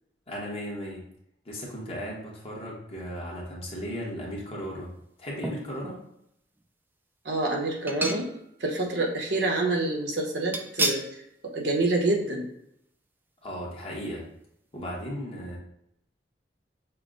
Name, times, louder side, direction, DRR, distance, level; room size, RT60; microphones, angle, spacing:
voice 1, 0.3-1.0 1.4-4.9 5.2-6.0 13.4-14.2 14.7-15.6, equal, 35° left, -3 dB, 1.1 m, -36 dB
sound 1, 5.4-6.0 6.6-6.7 7.9-8.6 8.9-9.0 10.5-11.1 11.5-11.7 12.0-12.1, right 1 dB, 10° right, 0.4 m, -31 dB
voice 2, 7.2-8.3 8.6-11.0 11.4-12.5, right 2 dB, 75° right, 0 dB, 1.0 m, -27 dB
5.8 x 2.2 x 3.7 m, 0.75 s
head